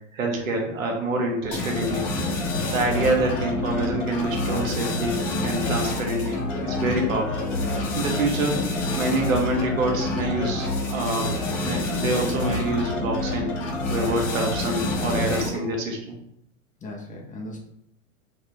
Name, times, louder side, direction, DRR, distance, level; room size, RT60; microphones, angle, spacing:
voice 1, 0.1-2.0 2.7-7.5 7.9-8.6 9.0-11.3 11.6-13.5 13.9-16.2, right 2 dB, 85° right, 1 dB, 1.2 m, -26 dB
sound 1, 1.5-15.7, left 2 dB, 70° left, 1.7 m, -27 dB
voice 2, 16.8-17.6, left 1 dB, 20° left, 0 dB, 0.9 m, -37 dB
5.0 x 2.6 x 3.1 m, 0.74 s
hypercardioid pair, 105°, 39 cm